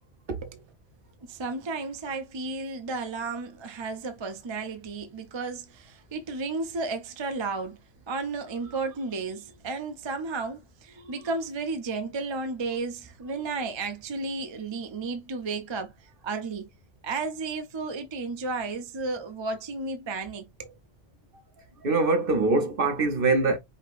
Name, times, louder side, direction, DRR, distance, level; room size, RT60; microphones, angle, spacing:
voice 1, 1.3-7.8 8.1-15.9 16.2-16.7 17.0-20.7, right 3 dB, 30° right, 0.6 m, -33 dB
voice 2, 21.8-23.6, right 3 dB, 55° right, 0.9 m, -23 dB
5.3 x 2.8 x 2.5 m
omnidirectional pair, 1.2 m